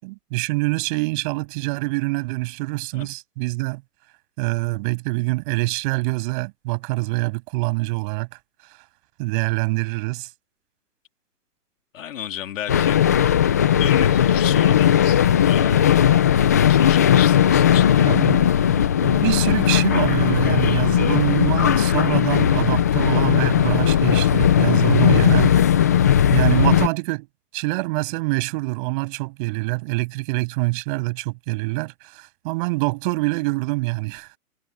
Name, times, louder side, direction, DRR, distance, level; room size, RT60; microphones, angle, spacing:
voice 1, 0.0-3.8 4.4-8.3 9.2-10.3 18.0-25.6 26.3-27.3 27.5-34.3, right 25 dB, 35° right, 7.2 m, -25 dB
voice 2, 11.9-13.1 13.8-16.2 16.7-18.1, left 10 dB, 55° left, 3.6 m, -32 dB
sound 1, 12.7-26.9, left 9 dB, 10° left, 0.5 m, -17 dB
hypercardioid pair, 145°, 45 cm